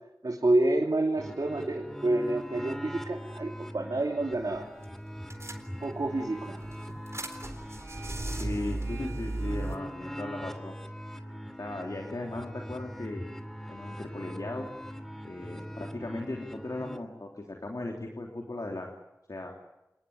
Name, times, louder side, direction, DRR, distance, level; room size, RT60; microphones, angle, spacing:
voice 1, 0.2-4.7 5.8-6.6, right 2 dB, 80° right, 1 dB, 2.8 m, -28 dB
sound 1, 1.2-17.0, equal, 5° left, 2.7 m, -41 dB
sound 2, 4.3-4.6 4.8-4.9 5.3-6.1 6.6-9.8, right 2 dB, 45° right, 3.9 m, -36 dB
voice 2, 8.4-10.8 11.6-13.2 13.7-14.7 15.2-18.9 19.3-19.5, left 2 dB, 70° left, 1 dB, 3.4 m, -37 dB
27.5 x 20.0 x 9.7 m, 0.95 s
wide cardioid pair, 45°, 6 cm